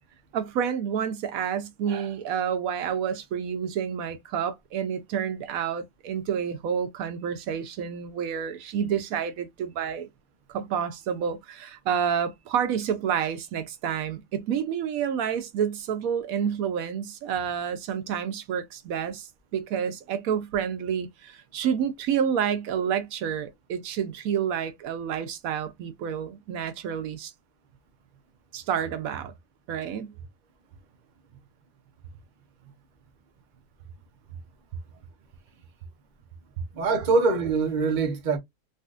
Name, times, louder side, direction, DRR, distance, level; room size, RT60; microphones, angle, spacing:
voice 1, 0.3-10.1 10.5-19.3 19.5-27.3 28.5-29.3 29.7-30.1, right 8 dB, 75° right, 1.0 m, -29 dB
voice 2, 36.7-38.4, right 4 dB, 40° right, 0.8 m, -23 dB
3.8 x 2.4 x 2.4 m
omnidirectional pair, 1.5 m